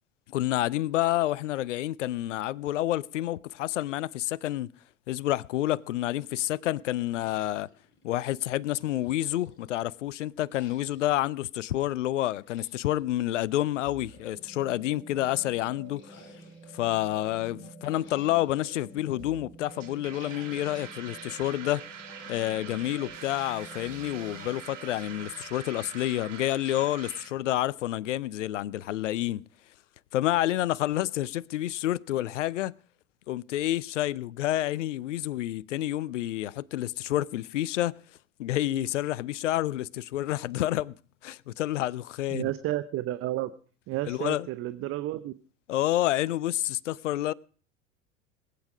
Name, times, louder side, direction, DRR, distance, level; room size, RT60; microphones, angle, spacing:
voice 1, 0.3-4.7 5.1-7.7 8.0-16.2 16.7-21.8 22.3-29.4 30.1-32.7 33.3-37.9 38.4-40.9 41.2-42.5 44.1-44.5 45.7-47.3, left 14 dB, 75° left, 0.5 m, -29 dB
sound 1, 7.1-8.3 8.7-9.9 10.5-11.2 12.3-13.0 13.8-14.8 15.8-16.9 17.6-18.8 19.7-20.9 21.3-22.7 23.5-24.7, left 5 dB, 30° left, 3.0 m, -57 dB
sound 2, 13.8-28.3, right 3 dB, 60° right, 3.7 m, -50 dB
sound 3, 19.7-27.3, right 8 dB, 80° right, 1.7 m, -44 dB
voice 2, 42.3-43.5 43.9-45.3, right 15 dB, 35° right, 0.7 m, -31 dB
20.5 x 8.5 x 4.9 m
figure-of-eight pair, 80°, 37 cm